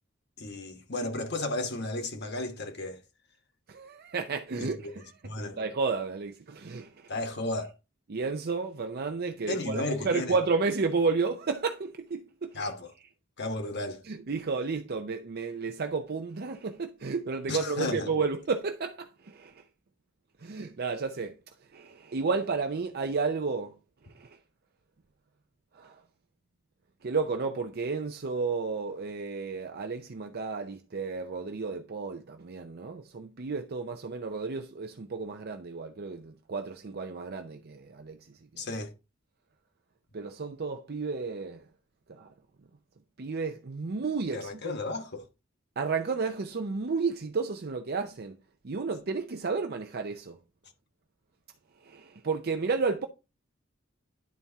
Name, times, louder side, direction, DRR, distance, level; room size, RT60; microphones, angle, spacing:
voice 1, 0.4-3.0 4.6-4.9 5.2-5.6 7.1-7.7 9.5-10.3 12.5-12.9 13.4-14.0 17.5-18.1 38.6-38.9 44.3-45.2, left 2 dB, 55° left, 1.3 m, -33 dB
voice 2, 3.7-5.1 5.6-7.1 8.1-12.7 14.0-19.6 20.4-21.3 21.7-23.8 24.1-24.4 25.7-26.0 27.0-38.6 40.1-41.7 42.1-42.3 43.2-44.7 45.8-48.4 48.6-50.4 51.8-53.1, right 4 dB, 50° right, 0.6 m, -32 dB
10.5 x 4.2 x 3.5 m
head